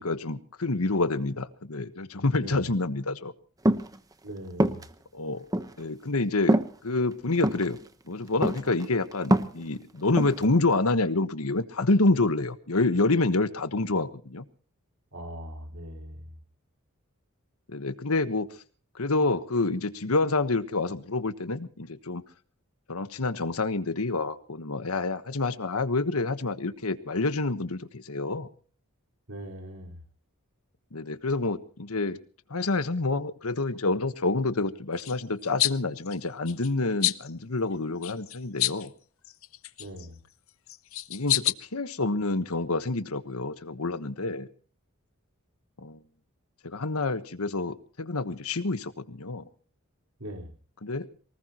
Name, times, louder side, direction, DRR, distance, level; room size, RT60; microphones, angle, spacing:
voice 1, 0.0-3.3 5.1-5.5 5.8-7.8 8.1-14.4 17.7-18.6 18.9-22.2 22.9-28.5 30.9-32.2 32.5-38.9 41.1-44.5 45.8-46.0 46.6-49.4 50.8-51.1, left 3 dB, 80° left, 11 dB, 1.3 m, -28 dB
sound 1, 3.7-4.0 4.6-4.8 5.5-5.7 6.5-6.7 7.4-7.7 8.4-8.8 9.1-9.6 10.2-10.4, right 1 dB, 15° right, 1.0 m, -23 dB
voice 2, 4.2-4.8 15.1-16.2 29.3-30.0 39.8-40.1 50.2-50.5, equal, 70° right, 2 dB, 4.7 m, -40 dB
sound 2, 35.0-35.2 35.6-35.8 36.1-36.7 37.0-37.3 38.0-38.9 39.2-40.1 40.7-41.5, left 15 dB, 65° left, 0.7 m, -28 dB
23.5 x 20.0 x 3.0 m, 0.42 s
head